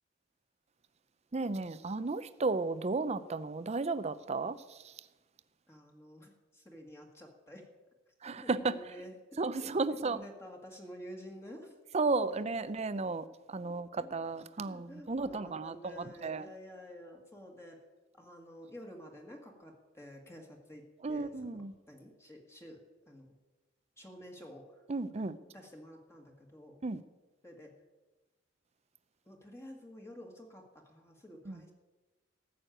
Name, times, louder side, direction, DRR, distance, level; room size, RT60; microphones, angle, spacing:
voice 1, 1.3-4.6 8.2-8.7 9.4-10.2 11.9-16.4 21.0-21.7 24.9-25.4 26.8-27.0 31.5-31.6, right 3 dB, 35° right, 14 dB, 0.5 m, -34 dB
voice 2, 5.7-7.6 8.4-9.7 10.0-11.8 12.3-12.7 13.7-14.1 14.6-17.8 18.1-21.6 21.9-23.3 24.0-24.8 25.2-26.8 27.4-27.7 29.3-31.7, equal, 15° left, 1 dB, 1.7 m, -51 dB
14.0 x 6.5 x 9.1 m, 1.2 s
head